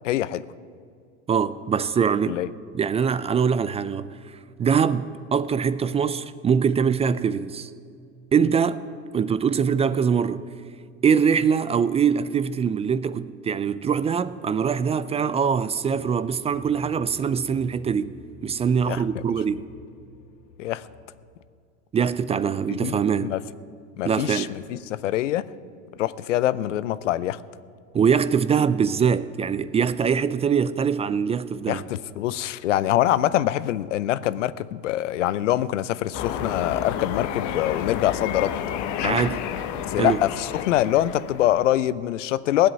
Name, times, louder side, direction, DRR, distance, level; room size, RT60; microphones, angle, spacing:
voice 1, 0.0-0.5 2.3-2.5 18.9-19.2 20.6-20.8 22.7-23.4 24.0-25.4 26.0-27.4 31.7-38.5 39.0-39.2 39.9-42.7, left 13 dB, 90° left, 0.6 m, -24 dB
voice 2, 1.3-2.4 2.7-7.7 8.3-8.8 9.1-10.4 11.0-18.2 18.4-19.7 21.9-23.3 24.0-24.5 27.9-31.8 39.0-39.4 39.9-40.2, right 7 dB, 20° right, 0.4 m, -23 dB
sound 1, 15.9-21.2, left 3 dB, 75° left, 1.9 m, -50 dB
sound 2, 36.1-41.8, left 9 dB, 55° left, 1.2 m, -31 dB
16.5 x 8.0 x 9.7 m
hypercardioid pair, 100°, 35 cm